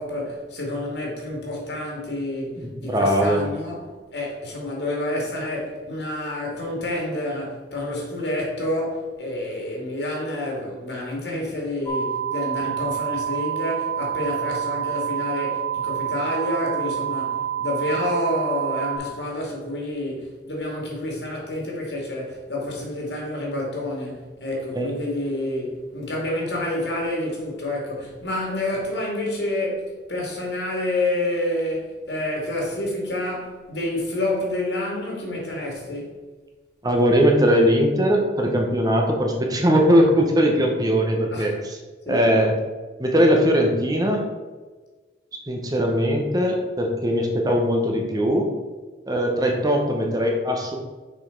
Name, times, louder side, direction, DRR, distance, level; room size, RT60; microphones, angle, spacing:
voice 1, 0.0-36.2 41.3-41.5 42.1-42.3, left 1 dB, 75° left, 2.3 m, -28 dB
voice 2, 2.6-3.4 24.7-24.9 36.8-41.8 42.1-42.5 43.0-44.2 45.5-48.5 49.1-50.8, equal, 20° right, 0.9 m, -20 dB
sound 1, 11.9-19.0, right 9 dB, 15° left, 1.1 m, -27 dB
6.3 x 5.1 x 4.5 m
head